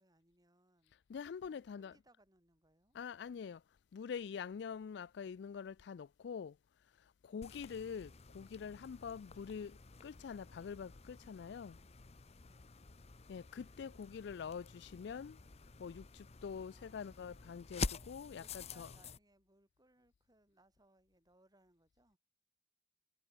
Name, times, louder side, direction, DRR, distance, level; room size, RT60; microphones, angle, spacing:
voice 1, 0.0-1.0 1.4-3.0 7.3-7.6 8.8-9.1 12.4-12.7 16.6-17.2 18.3-22.2, right 1 dB, 20° right, 7.9 m, -71 dB
voice 2, 1.1-2.0 2.9-3.6 3.9-6.5 7.2-9.8 10.0-11.8 13.3-15.4 15.8-18.9, left 6 dB, 65° left, 0.4 m, -45 dB
sound 1, 7.4-19.2, left 4 dB, 35° left, 0.8 m, -48 dB
head